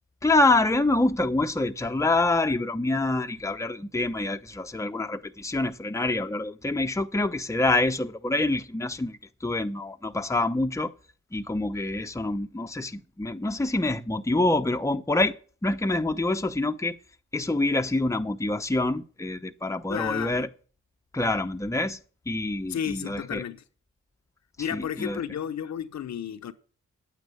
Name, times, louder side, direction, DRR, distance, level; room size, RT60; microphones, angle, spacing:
voice 1, 0.2-10.9 11.3-15.4 15.6-16.9 17.3-20.5 21.1-22.0 22.3-23.4 24.7-25.2, left 2 dB, 10° left, 0.8 m, -26 dB
voice 2, 19.9-20.4 22.7-23.6 24.6-26.5, left 9 dB, 65° left, 0.9 m, -32 dB
9.2 x 9.2 x 8.4 m
cardioid pair, 70°, 30 cm